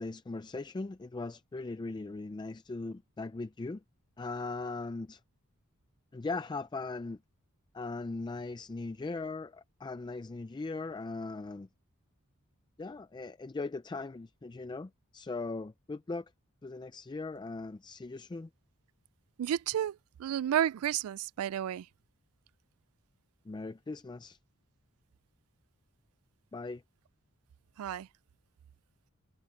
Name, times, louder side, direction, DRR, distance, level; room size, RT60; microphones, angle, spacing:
voice 1, 0.0-3.8 4.2-5.2 6.1-7.2 7.7-11.7 12.8-16.3 16.6-18.5 23.5-24.4 26.5-26.8, left 3 dB, 20° left, 0.3 m, -39 dB
voice 2, 19.4-21.8 27.8-28.1, right 10 dB, 75° right, 0.3 m, -31 dB
head